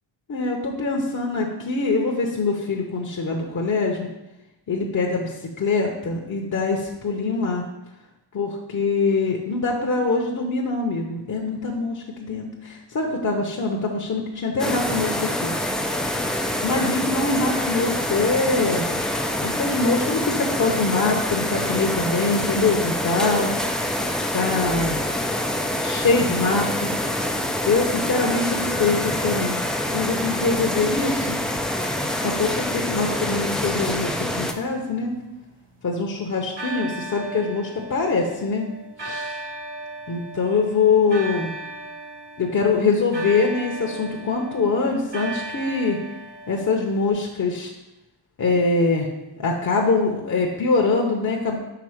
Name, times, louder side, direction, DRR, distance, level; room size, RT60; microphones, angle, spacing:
voice 1, 0.3-4.1 4.7-7.6 8.3-15.5 16.6-18.9 19.4-23.5 24.3-25.0 25.8-26.9 27.6-29.6 29.9-31.4 32.2-35.1 35.8-38.6 39.0-39.4 40.1-41.5 42.4-46.0 46.5-47.7 48.4-49.1 49.4-51.6, left 3 dB, 40° left, -1 dB, 0.8 m, -23 dB
sound 1, 14.6-34.5, left 1 dB, ahead, 0.3 m, -26 dB
sound 2, 34.7-36.0 36.6-47.1, right 2 dB, 60° right, 1.5 m, -36 dB
5.9 x 3.6 x 5.0 m, 0.97 s
cardioid pair, 100°, 47 cm